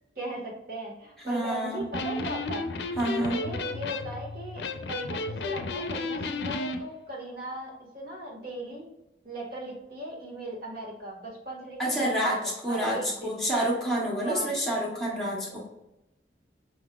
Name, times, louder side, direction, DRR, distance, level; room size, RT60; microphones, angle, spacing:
voice 1, 0.1-2.7 3.2-8.9 9.2-13.3 14.2-14.5, right 1 dB, 55° right, -2 dB, 1.5 m, -38 dB
voice 2, 1.2-1.9 3.0-3.4 11.8-15.7, right 1 dB, ahead, -4 dB, 1.5 m, -28 dB
Electric guitar, 1.8-6.8, left 3 dB, 70° left, 0.5 m, -33 dB
5.1 x 3.8 x 2.3 m, 0.90 s
head